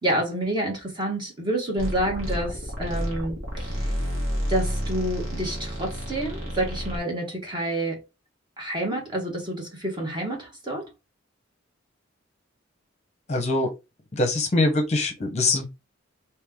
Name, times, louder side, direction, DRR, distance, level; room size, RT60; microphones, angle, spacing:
voice 1, 0.0-3.9 4.5-8.0 8.6-10.9, right 1 dB, 25° right, 1.3 m, -28 dB
sound 1, 1.8-7.0, equal, 90° right, 1.4 m, -30 dB
voice 2, 13.3-13.7 14.1-15.7, left 2 dB, 35° left, 0.8 m, -23 dB
3.2 x 2.8 x 3.6 m
head